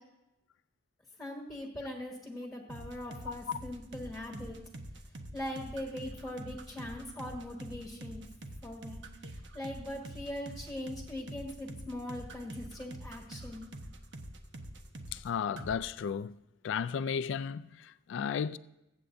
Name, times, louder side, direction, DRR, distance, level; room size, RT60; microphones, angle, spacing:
voice 1, 1.2-4.6 5.3-8.2 8.6-9.0 9.5-13.7, left 1 dB, ahead, 1.4 m, -41 dB
sound 1, 2.7-15.3 15.6-15.8, right 1 dB, 70° right, 1.0 m, -45 dB
voice 2, 15.1-16.4 16.6-18.6, left 7 dB, 75° left, 0.3 m, -34 dB
22.0 x 8.1 x 2.6 m
head